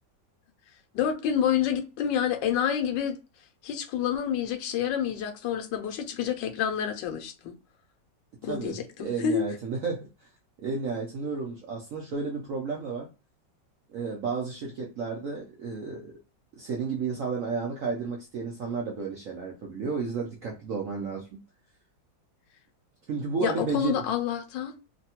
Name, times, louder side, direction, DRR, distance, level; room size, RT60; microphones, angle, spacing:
voice 1, 0.9-3.2 3.6-7.5 8.4-9.4 23.4-24.7, left 9 dB, 80° left, 1.2 m, -28 dB
voice 2, 8.4-10.3 10.6-13.1 13.9-16.1 16.5-21.4 23.1-24.0, right 5 dB, 70° right, 0.8 m, -32 dB
3.1 x 2.2 x 2.8 m
omnidirectional pair, 2.0 m